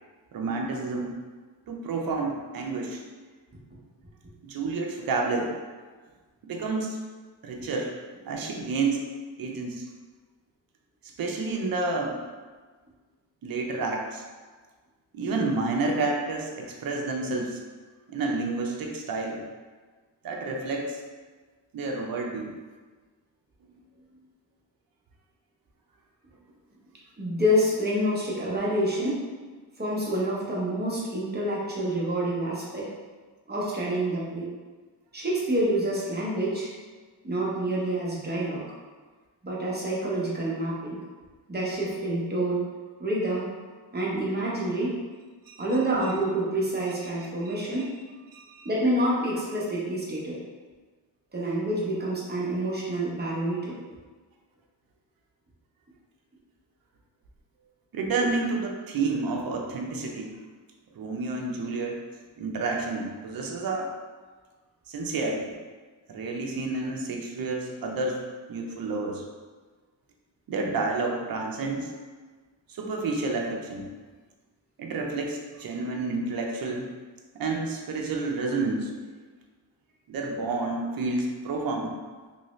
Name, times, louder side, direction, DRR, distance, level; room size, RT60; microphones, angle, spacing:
voice 1, 0.3-1.2 1.7-3.0 4.4-5.5 6.4-7.0 7.4-7.9 8.3-9.1 9.4-9.9 11.2-12.2 13.4-14.2 15.1-17.6 18.1-19.4 20.2-21.0 21.7-22.5 45.5-45.6 47.4-47.5 48.3-48.7 57.9-60.3 60.9-62.0 62.4-63.9 64.9-65.5 66.1-68.2 68.5-69.2 70.5-71.9 72.7-73.9 74.8-76.9 77.3-79.0 80.1-81.9, right 3 dB, 50° right, 0 dB, 0.6 m, -30 dB
voice 2, 27.2-29.3 29.8-32.9 33.5-34.5 35.1-36.7 37.2-38.6 39.4-41.0 41.5-42.6 43.0-43.5 43.9-45.0 45.6-48.0 48.6-50.4 51.3-53.8, right 1 dB, 20° right, -6 dB, 0.8 m, -27 dB
3.0 x 2.6 x 3.0 m, 1.4 s
wide cardioid pair, 125°, 45 cm